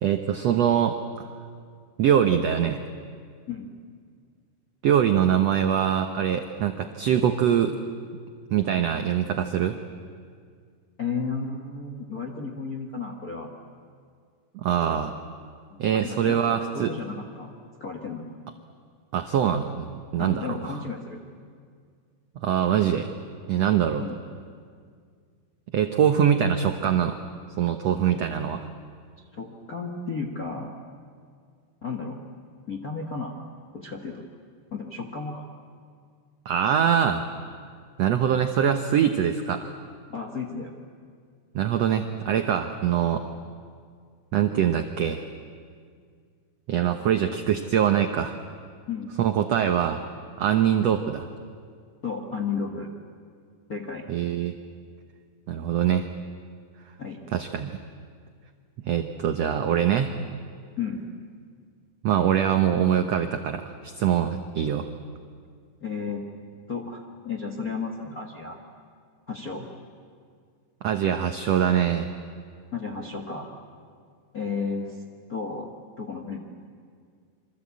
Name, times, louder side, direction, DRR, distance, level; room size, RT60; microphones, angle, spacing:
voice 1, 0.0-1.0 2.0-2.8 4.8-7.7 8.5-9.8 14.5-15.1 15.8-16.9 19.1-20.8 22.4-23.1 23.5-24.1 25.7-27.2 27.6-28.7 36.4-37.2 38.0-39.7 41.5-43.3 44.3-45.2 46.7-48.4 49.2-50.0 50.4-51.3 54.1-54.5 55.5-56.1 57.3-57.8 58.8-60.2 62.0-64.9 70.8-72.1, right 9 dB, 85° right, 7 dB, 1.4 m, -23 dB
voice 2, 11.0-13.5 15.7-17.5 17.8-18.2 20.2-21.2 24.0-24.2 29.2-30.7 31.8-32.2 32.7-33.4 33.7-34.3 34.7-35.5 40.1-40.7 48.9-49.1 52.0-52.9 53.7-54.0 57.0-57.2 60.8-61.0 65.8-66.2 66.7-68.6 69.3-69.7 72.7-73.5 74.3-75.0 75.3-75.7 76.0-76.4, left 5 dB, 55° left, 2 dB, 0.9 m, -33 dB
27.0 x 24.0 x 8.4 m, 2.1 s
omnidirectional pair, 4.3 m